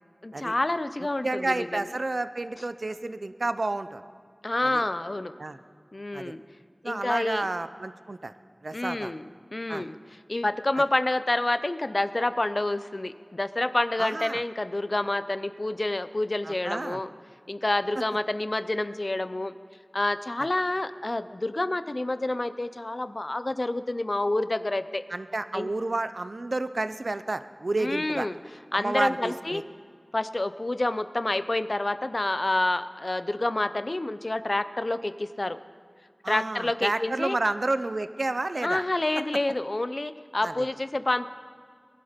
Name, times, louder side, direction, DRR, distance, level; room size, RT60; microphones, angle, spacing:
voice 1, 0.2-1.9 4.4-5.3 5.9-6.4 6.8-7.5 8.7-10.0 10.3-17.1 17.5-19.5 19.9-25.0 25.5-25.7 27.8-28.4 28.7-29.6 30.1-35.6 36.3-37.4 38.6-41.3, left 2 dB, 55° left, 12 dB, 0.6 m, -28 dB
voice 2, 1.2-4.0 4.7-4.8 5.4-5.6 6.1-6.3 6.8-8.3 8.6-9.1 9.7-9.9 14.0-14.4 16.4-17.0 25.1-28.3 28.7-29.6 36.2-38.8 40.4-40.7, right 2 dB, 75° right, 12 dB, 0.5 m, -30 dB
20.5 x 11.5 x 5.1 m, 2.2 s
wide cardioid pair, 50°, 0 cm